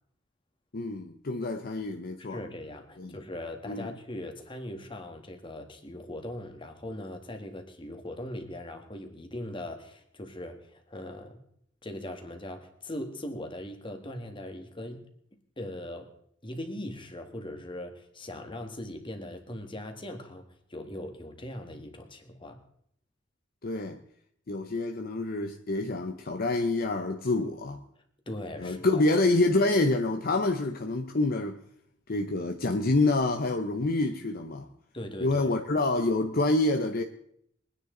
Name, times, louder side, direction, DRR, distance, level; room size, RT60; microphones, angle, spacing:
voice 1, 0.7-2.4 3.0-3.2 3.7-3.9 23.6-24.0 24.5-27.8 28.6-31.6 32.1-34.7 35.2-37.0, left 2 dB, 50° left, 0.8 m, -27 dB
voice 2, 2.3-11.4 11.8-15.0 15.6-16.1 16.4-20.4 20.7-22.6 28.3-29.0 34.9-35.5, left 1 dB, 25° left, 1.8 m, -40 dB
23.0 x 9.9 x 3.9 m
head